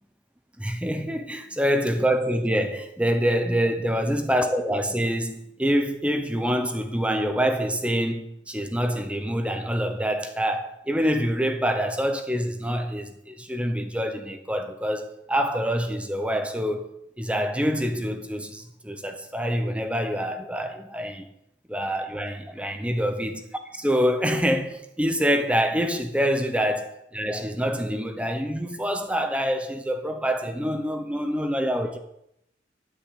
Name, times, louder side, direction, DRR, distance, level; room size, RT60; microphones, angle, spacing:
voice 1, 0.6-16.9 17.2-21.3 21.7-23.4 23.7-32.0, equal, 5° right, 1.0 m, -26 dB
13.0 x 8.7 x 8.4 m
head